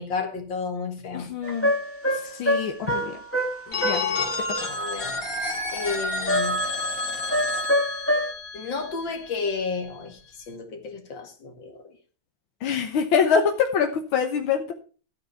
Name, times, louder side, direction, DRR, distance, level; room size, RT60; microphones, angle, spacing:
voice 1, 0.0-1.3 3.7-4.3 4.7-5.2 5.7-6.6 8.5-10.2 10.5-11.8, left 4 dB, 70° left, 2.7 m, -32 dB
voice 2, 1.1-1.7 2.1-3.2 3.8-4.0 4.6-4.7 12.6-14.7, left 6 dB, 85° left, 1.9 m, -24 dB
sound 1, 1.4-4.1 6.3-6.8 7.3-8.3, equal, 5° left, 1.5 m, -25 dB
Telephone, 3.7-9.5, left 2 dB, 45° left, 2.5 m, -30 dB
12.5 x 8.9 x 4.6 m
omnidirectional pair, 2.2 m